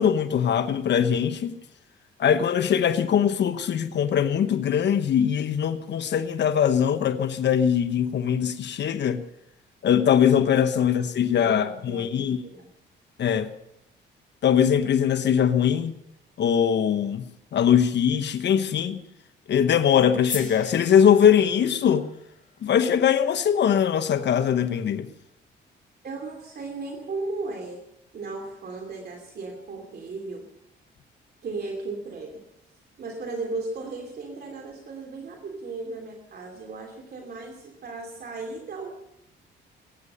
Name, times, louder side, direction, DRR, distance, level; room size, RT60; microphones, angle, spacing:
voice 1, 0.0-1.6 2.2-9.2 9.8-12.4 13.2-13.5 14.4-15.9 16.4-17.3 17.5-19.0 19.5-22.1 22.6-25.1, left 8 dB, 60° left, 1.2 m, -21 dB
voice 2, 11.3-12.7 26.0-27.8 28.1-30.5 31.4-32.4 33.0-38.9, right 3 dB, 50° right, 2.8 m, -36 dB
sound 1, 20.2-24.5, left 5 dB, 40° left, 2.3 m, -41 dB
21.0 x 9.8 x 6.8 m
cardioid pair, 90°, 20 cm